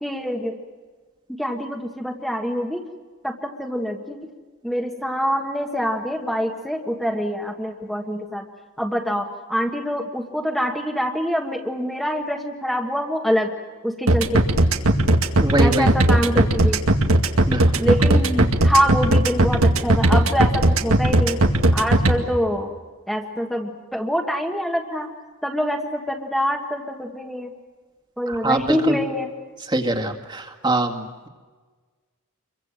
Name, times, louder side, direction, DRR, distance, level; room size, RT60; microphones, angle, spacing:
voice 1, 0.0-0.6 1.4-2.9 3.2-4.3 4.6-8.5 8.8-13.5 13.8-14.4 15.6-16.8 17.8-21.4 21.7-22.7 23.1-25.1 25.4-27.5 28.2-29.3, equal, ahead, 0 dB, 1.5 m, -25 dB
sound 1, 14.1-22.1, right 1 dB, 80° right, 2.2 m, -16 dB
voice 2, 15.4-15.9 17.5-17.6 28.4-28.6 29.7-31.3, right 2 dB, 20° right, 4 dB, 2.0 m, -23 dB
27.5 x 23.5 x 7.5 m, 1.4 s
head